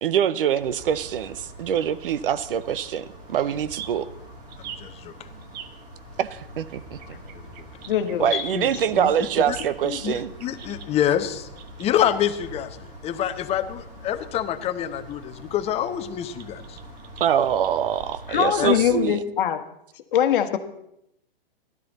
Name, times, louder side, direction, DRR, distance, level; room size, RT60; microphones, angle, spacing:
voice 1, 0.0-4.1 6.2-7.2 8.2-10.3 17.2-19.2, right 9 dB, 65° right, 16 dB, 0.7 m, -24 dB
sound 1, 0.6-19.1, equal, 25° right, 3.3 m, -44 dB
sound 2, 1.7-5.8 6.5-12.7 13.0-13.1 13.6-13.7 15.0-15.1 15.8-18.5, right 9 dB, 45° right, 1.1 m, -44 dB
voice 2, 4.6-5.1 7.3-7.7 8.3-8.5 9.5-9.6 10.0-10.1 10.4-11.5 11.8-16.8 18.6-18.7, left 10 dB, 20° left, 9 dB, 0.9 m, -26 dB
voice 3, 7.9-9.1 9.8-10.0 18.3-19.6 20.1-20.6, left 10 dB, 60° left, 9 dB, 1.3 m, -23 dB
16.0 x 12.5 x 4.1 m, 0.78 s
hypercardioid pair, 125°, 30 cm